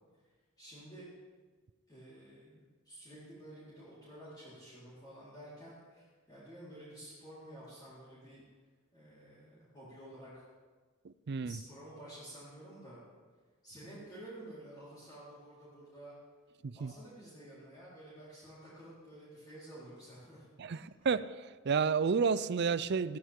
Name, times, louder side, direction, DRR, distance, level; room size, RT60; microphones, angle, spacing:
voice 1, 0.6-1.1 1.9-8.4 8.9-10.4 11.4-13.0 13.6-16.1 16.7-20.4 20.7-20.8, right 1 dB, 20° left, 4.3 m, -51 dB
voice 2, 11.0-11.6 16.6-16.9 20.6-21.3 21.6-23.2, right 5 dB, 55° right, 0.5 m, -31 dB
16.0 x 15.5 x 3.8 m
head